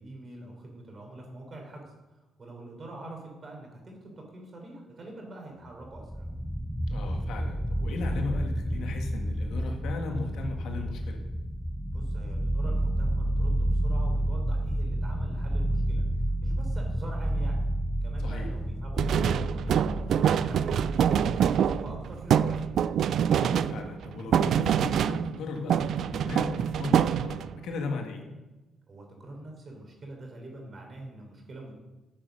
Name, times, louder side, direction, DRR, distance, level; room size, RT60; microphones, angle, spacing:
voice 1, 0.0-6.3 11.9-17.6 18.0-20.8 21.2-22.7 28.9-31.7, right 2 dB, 40° right, 1 dB, 3.9 m, -45 dB
sound 1, 5.8-23.2, right 1 dB, ahead, 0.5 m, -30 dB
voice 2, 6.9-11.2 18.2-18.5 23.4-25.8 26.1-28.2, left 3 dB, 80° left, 3 dB, 1.9 m, -36 dB
sound 2, 19.0-25.4 25.7-27.6, right 9 dB, 70° right, 0.3 m, -25 dB
9.9 x 7.7 x 6.6 m, 1.1 s
cardioid pair, 90°, 0 cm